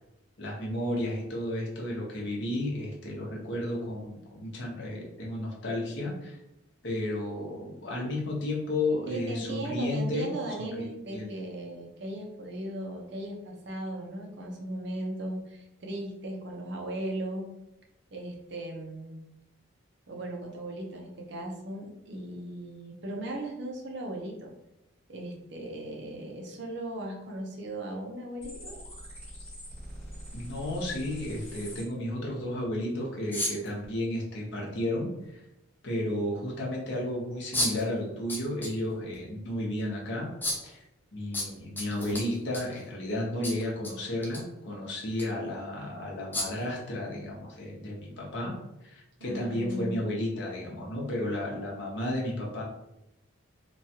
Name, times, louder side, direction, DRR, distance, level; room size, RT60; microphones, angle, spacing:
voice 1, 0.4-6.3 6.8-10.3 10.6-10.9 11.1-11.3 30.3-35.4 35.8-40.3 40.6-40.8 41.1-48.5 48.8-52.6, left 1 dB, 60° left, -3 dB, 0.8 m, -33 dB
voice 2, 9.1-17.5 18.1-19.2 20.1-24.5 25.1-28.8 49.2-50.0, right 1 dB, 55° right, 0 dB, 0.6 m, -37 dB
sound 1, 28.4-31.8, equal, 30° left, 1.1 m, -43 dB
sound 2, 33.3-33.7 35.2-35.3 37.5-37.8 38.3-38.7 39.1-39.2 40.4-40.7 41.3-42.8 43.4-43.9 44.2-44.4 45.1-45.2 46.3-46.6, left 1 dB, 10° left, 0.4 m, -32 dB
3.0 x 2.3 x 2.8 m, 0.87 s
head